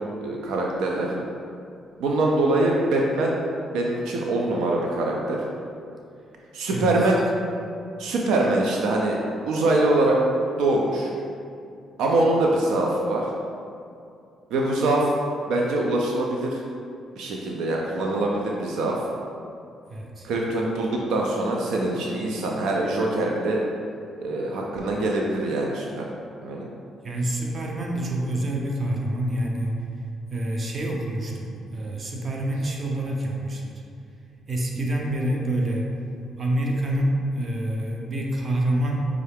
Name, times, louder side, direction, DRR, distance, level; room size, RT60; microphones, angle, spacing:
voice 1, 0.2-1.1 2.0-3.3 3.7-5.4 6.5-7.2 8.0-9.2 9.5-10.2 10.6-11.1 12.0-13.2 14.5-15.1 15.5-16.6 17.2-19.0 20.2-23.6 24.2-26.0 26.4-26.7, right 2 dB, 90° right, -1 dB, 0.4 m, -23 dB
voice 2, 6.7-7.1 19.9-20.3 27.0-29.7 30.3-33.6 34.5-35.9 36.4-39.2, right 1 dB, 40° right, -1 dB, 0.6 m, -27 dB
5.3 x 2.4 x 3.3 m, 2.4 s
cardioid pair, 90°, 0 cm